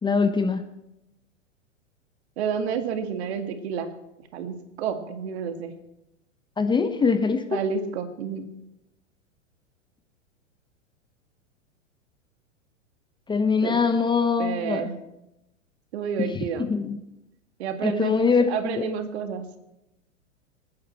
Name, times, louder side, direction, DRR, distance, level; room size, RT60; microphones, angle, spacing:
voice 1, 0.0-0.6 6.6-7.6 13.3-14.9 16.2-16.3 16.6-17.0 17.8-18.8, left 5 dB, 10° left, 8 dB, 0.9 m, -23 dB
voice 2, 2.4-3.9 4.2-5.7 7.5-8.5 13.6-13.8 14.4-15.0 15.9-16.7 17.6-19.5, right 6 dB, 60° right, 7 dB, 2.1 m, -30 dB
25.5 x 9.8 x 4.5 m, 0.91 s
hypercardioid pair, 100°, 37 cm